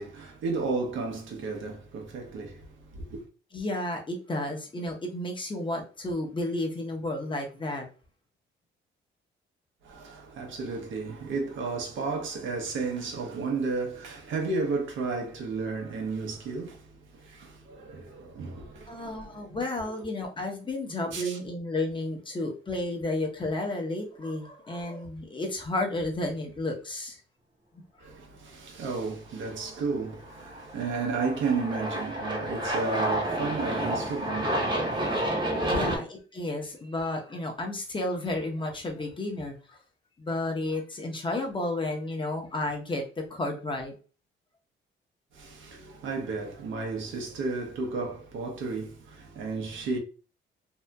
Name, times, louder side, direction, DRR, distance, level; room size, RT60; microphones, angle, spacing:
voice 1, 0.0-3.2 9.8-19.5 21.0-21.4 28.0-35.8 45.3-50.0, right 4 dB, 75° right, 0.8 m, -33 dB
voice 2, 3.5-7.9 18.9-27.2 28.0-28.1 35.7-39.8 40.2-43.9, left 2 dB, 25° left, 0.8 m, -32 dB
Aircraft, 30.2-36.0, right 1 dB, 25° right, 0.8 m, -30 dB
2.7 x 2.4 x 2.2 m
cardioid pair, 90°, 20 cm